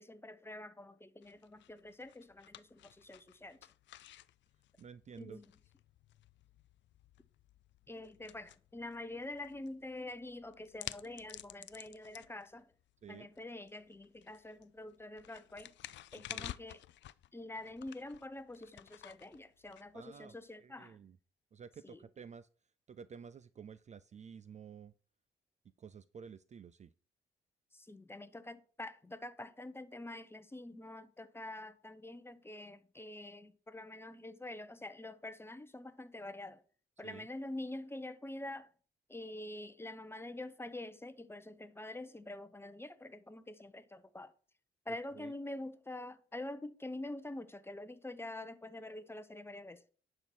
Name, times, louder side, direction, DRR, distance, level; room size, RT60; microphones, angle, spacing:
voice 1, 0.0-3.6 5.2-5.5 7.9-12.7 13.1-15.7 16.1-16.8 17.3-21.0 21.8-22.0 27.7-36.6 37.0-38.7 39.1-44.3 44.9-49.8, left 1 dB, 10° left, 0.9 m, -46 dB
sound 1, 1.2-20.5, left 13 dB, 65° left, 0.5 m, -53 dB
voice 2, 4.8-5.4 13.0-13.3 16.3-16.5 19.9-21.2 21.5-22.5 22.9-24.9 25.8-26.9 37.0-37.3 44.9-45.3, right 7 dB, 35° right, 0.4 m, -52 dB
10.5 x 4.4 x 6.1 m
cardioid pair, 90°, 20 cm